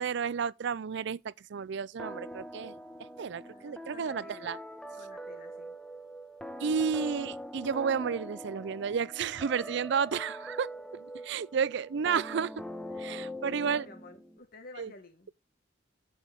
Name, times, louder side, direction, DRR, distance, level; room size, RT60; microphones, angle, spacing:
voice 1, 0.0-2.7 3.2-4.6 6.6-12.5 13.0-13.8 14.8-14.9, right 6 dB, 65° right, 0.4 m, -32 dB
sound 1, 2.0-14.4, equal, 5° left, 1.0 m, -43 dB
voice 2, 3.4-4.6 4.9-5.8 10.0-10.3 13.4-15.3, left 3 dB, 50° left, 1.6 m, -52 dB
14.5 x 6.2 x 3.5 m
head